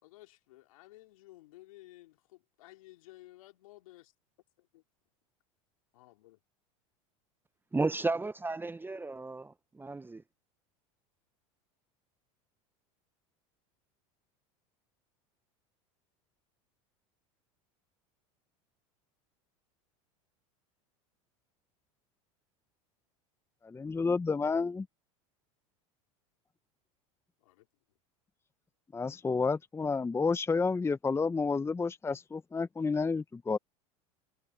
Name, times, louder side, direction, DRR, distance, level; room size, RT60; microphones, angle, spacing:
voice 1, 0.0-4.1 4.6-4.8 5.9-6.4 27.4-27.7, left 18 dB, 75° left, 3.6 m, -55 dB
voice 2, 7.7-10.2, right 3 dB, 10° right, 1.0 m, -33 dB
voice 3, 23.6-24.9 28.9-33.6, left 4 dB, 15° left, 0.9 m, -30 dB
hypercardioid pair, 90°, 18 cm